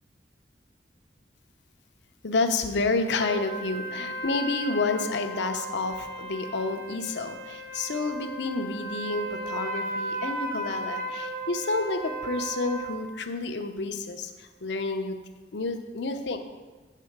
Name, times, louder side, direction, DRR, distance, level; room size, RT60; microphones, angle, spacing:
voice 1, 2.2-15.2 15.5-16.4, left 3 dB, 70° left, 6 dB, 0.7 m, -29 dB
sound 1, 3.2-13.1, right 2 dB, 50° right, 1.1 m, -36 dB
8.3 x 3.8 x 6.5 m, 1.3 s
head